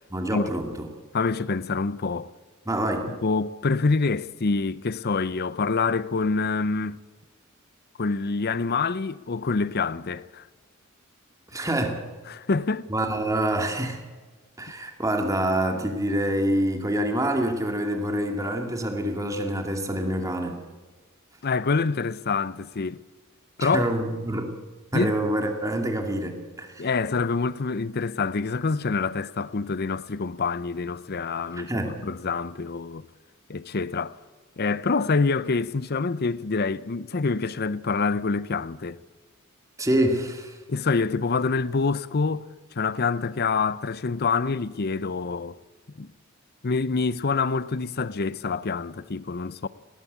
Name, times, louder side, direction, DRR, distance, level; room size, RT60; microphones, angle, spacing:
voice 1, 0.1-0.7 2.7-3.1 11.5-12.0 12.9-14.0 14.6-20.6 23.6-24.5 24.9-26.8 31.6-31.9 39.8-40.6, right 1 dB, 15° right, 2.4 m, -26 dB
voice 2, 1.1-2.3 3.1-7.0 8.0-10.4 12.3-12.9 21.4-23.0 23.6-23.9 24.9-25.2 26.8-33.0 33.5-34.2 34.6-39.0 40.7-42.5 42.7-45.6 46.0-46.1 46.6-49.7, left 4 dB, 50° left, 0.7 m, -26 dB
19.0 x 18.5 x 8.2 m
head